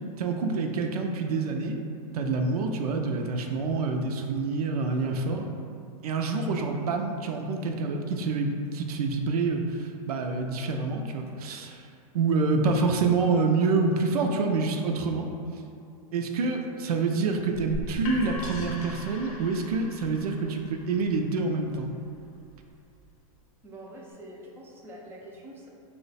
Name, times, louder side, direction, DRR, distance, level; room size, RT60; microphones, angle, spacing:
voice 1, 0.2-1.8 2.1-5.5 6.0-11.9 12.1-15.3 16.1-21.9, right 4 dB, 85° right, 3 dB, 0.4 m, -27 dB
sound 1, 17.5-23.3, left 2 dB, 70° left, 0.6 m, -41 dB
voice 2, 23.6-25.7, right 1 dB, 10° right, -3 dB, 0.4 m, -45 dB
3.0 x 2.1 x 4.0 m, 2.6 s
hypercardioid pair, 130°, 19 cm